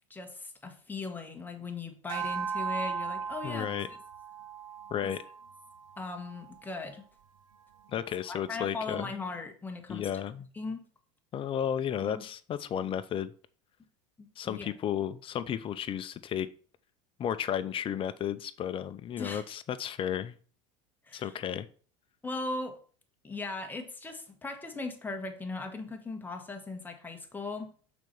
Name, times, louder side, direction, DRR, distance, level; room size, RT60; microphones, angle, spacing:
voice 1, 0.1-3.8 5.0-5.1 6.0-7.0 8.3-10.1 10.5-10.8 12.0-12.2 14.4-14.7 19.2-19.4 21.0-21.4 22.2-22.8 23.2-27.7, left 3 dB, 10° left, 4 dB, 1.4 m, -38 dB
sound 1, 2.1-6.7, right 6 dB, 70° right, 0.8 m, -37 dB
voice 2, 3.4-3.9 4.9-5.2 7.9-9.1 9.9-10.5 11.3-13.3 14.4-16.5 17.2-20.4 21.1-21.7, left 9 dB, 35° left, 12 dB, 0.6 m, -33 dB
6.0 x 4.4 x 5.5 m, 0.41 s
hypercardioid pair, 95°, 16 cm